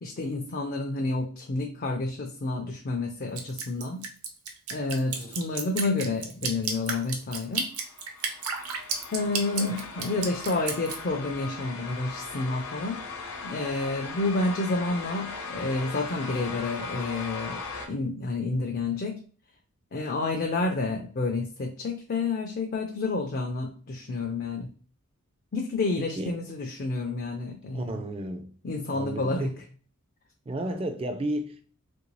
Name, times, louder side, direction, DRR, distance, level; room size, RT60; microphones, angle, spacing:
voice 1, 0.0-4.0 4.7-7.7 9.1-13.0 13.4-17.6 17.9-19.2 19.9-24.7 25.5-28.0 28.6-29.5, left 3 dB, 45° left, 0.4 m, -29 dB
Drip, 3.4-11.0, right 5 dB, 75° right, 0.6 m, -32 dB
sound 1, 7.8-17.9, left 4 dB, 85° left, 0.7 m, -39 dB
voice 2, 26.0-26.4 27.7-28.6 28.9-29.6 30.5-31.6, right 1 dB, 25° right, 0.3 m, -33 dB
3.1 x 2.6 x 3.0 m
head